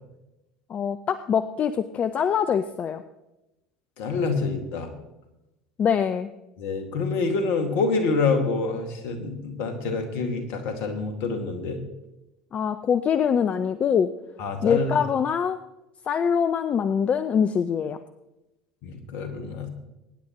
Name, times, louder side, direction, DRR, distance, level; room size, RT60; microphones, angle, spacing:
voice 1, 0.7-3.0 5.8-6.3 12.5-14.1 14.6-15.6 16.1-18.0, left 7 dB, 40° left, 12 dB, 0.6 m, -24 dB
voice 2, 4.0-4.9 6.6-11.8 14.4-15.0 18.8-19.7, left 4 dB, 60° left, 5 dB, 2.2 m, -27 dB
23.0 x 10.0 x 3.1 m, 0.96 s
hypercardioid pair, 65°, 4 cm